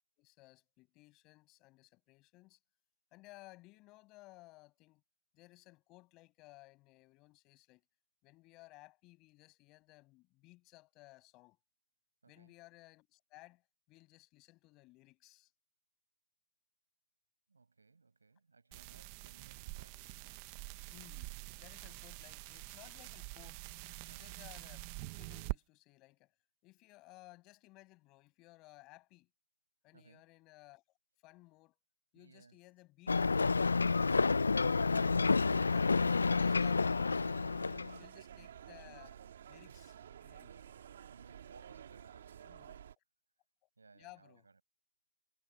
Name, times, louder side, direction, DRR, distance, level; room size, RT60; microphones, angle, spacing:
voice 1, 0.2-2.6 3.1-5.0 5.3-7.8 8.2-11.6 12.3-15.5 20.2-20.3 20.9-23.7 24.1-26.3 26.6-29.3 29.8-30.8 31.2-31.8 32.1-34.1 38.0-40.5 41.9-42.0 42.4-42.8 43.9-44.5, left 21 dB, 10° left, 6.1 m, -59 dB
voice 2, 12.2-12.5 17.5-20.1 24.1-24.4 29.9-30.2 32.1-32.6 37.6-38.0 40.4-40.7 41.1-42.7 43.8-44.6, right 4 dB, 90° right, 5.8 m, -63 dB
sound 1, 18.7-25.6, right 21 dB, 15° right, 0.5 m, -46 dB
Ocean, 33.1-38.0, left 4 dB, 85° left, 0.5 m, -29 dB
sound 2, 34.5-42.9, right 9 dB, 30° right, 2.2 m, -52 dB
hypercardioid pair, 180°, 0 cm